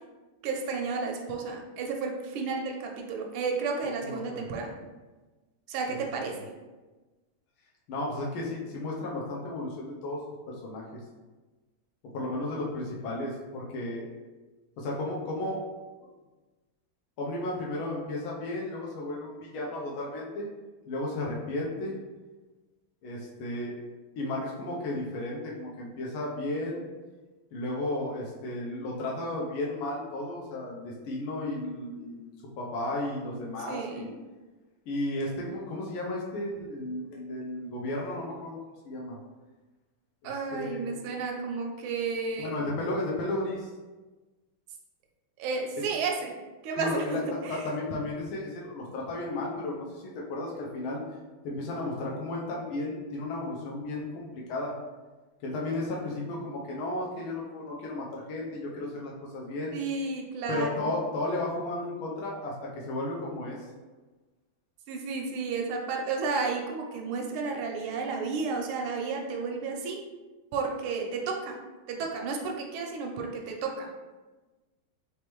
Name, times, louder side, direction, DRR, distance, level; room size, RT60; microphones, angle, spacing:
voice 1, 0.4-4.7 5.7-6.4 33.7-34.0 40.2-42.5 45.4-46.3 46.6-47.6 59.7-60.9 64.9-70.0 70.5-71.6 71.9-73.9, right 4 dB, 85° right, 1 dB, 1.5 m, -32 dB
voice 2, 4.0-4.4 5.9-6.0 6.3-6.4 7.9-11.0 12.1-14.1 14.8-15.6 17.2-20.5 20.9-22.0 23.0-23.8 24.2-26.9 27.5-34.1 34.9-38.6 38.8-39.2 40.2-41.2 42.4-43.7 46.8-51.0 51.4-54.7 55.4-59.8 60.5-63.6, left 2 dB, 90° left, -3 dB, 1.6 m, -34 dB
4.1 x 3.5 x 3.0 m, 1.2 s
omnidirectional pair, 2.2 m